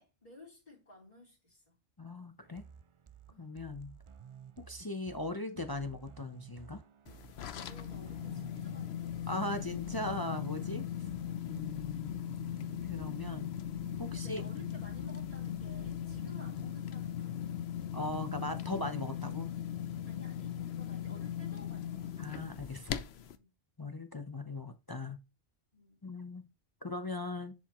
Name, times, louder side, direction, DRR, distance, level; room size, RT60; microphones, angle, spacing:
voice 1, 0.0-1.8 3.3-3.5 7.6-9.7 14.1-17.6 20.1-22.3 23.2-23.5 25.7-26.0, left 1 dB, 40° left, 3.7 m, -55 dB
voice 2, 2.0-2.6 3.4-4.0 4.6-6.8 9.3-10.9 11.4-12.1 12.9-13.5 14.0-14.4 17.9-19.5 22.2-23.0 23.8-25.2 26.0-26.4 26.8-27.5, left 2 dB, 25° left, 0.6 m, -39 dB
sound 1, 2.4-16.7, right 7 dB, 50° right, 0.3 m, -53 dB
sound 2, 7.1-23.4, left 10 dB, 85° left, 0.9 m, -39 dB
10.5 x 4.9 x 3.0 m
omnidirectional pair, 1.0 m